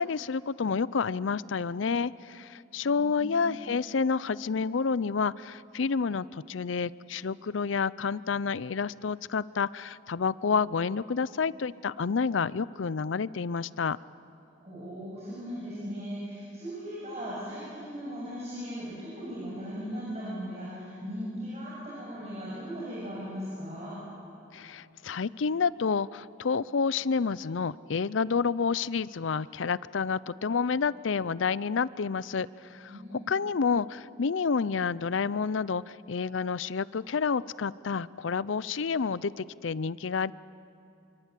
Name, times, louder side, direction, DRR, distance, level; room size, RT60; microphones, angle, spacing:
voice 1, 0.0-14.0 24.5-40.3, left 5 dB, 90° left, 19 dB, 0.5 m, -29 dB
voice 2, 2.8-3.5 14.6-23.9 32.9-33.2, equal, 35° right, -7 dB, 7.0 m, -38 dB
26.5 x 24.0 x 8.4 m, 2.7 s
head